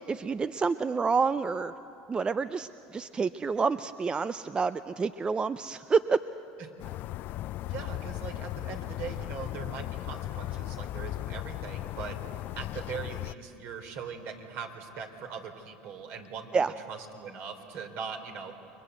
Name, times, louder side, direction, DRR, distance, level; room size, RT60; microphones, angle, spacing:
voice 1, 0.1-1.7 2.1-6.2 16.5-16.7, right 5 dB, 20° right, 13 dB, 0.5 m, -28 dB
sound 1, 6.8-13.3, left 15 dB, 55° left, 0.5 m, -37 dB
voice 2, 7.7-12.2 12.6-18.5, right 6 dB, 60° right, 5 dB, 3.3 m, -41 dB
29.5 x 22.5 x 8.0 m, 3.0 s
supercardioid pair, 100°, 4 cm